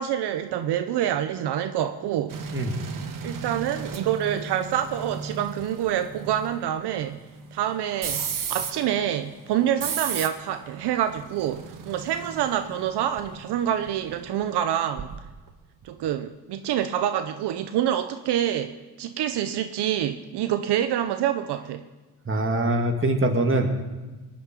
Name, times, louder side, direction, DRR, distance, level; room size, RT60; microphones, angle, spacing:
voice 1, 0.0-2.4 3.2-7.3 7.5-15.1 15.8-21.8, right 10 dB, 80° right, 9 dB, 0.8 m, -27 dB
sound 1, 2.3-15.5 15.8-16.1, right 6 dB, 55° right, 1.5 m, -36 dB
voice 2, 22.3-23.8, right 1 dB, 30° right, 3 dB, 2.4 m, -23 dB
19.5 x 6.5 x 9.0 m, 1.2 s
cardioid pair, 85°, 39 cm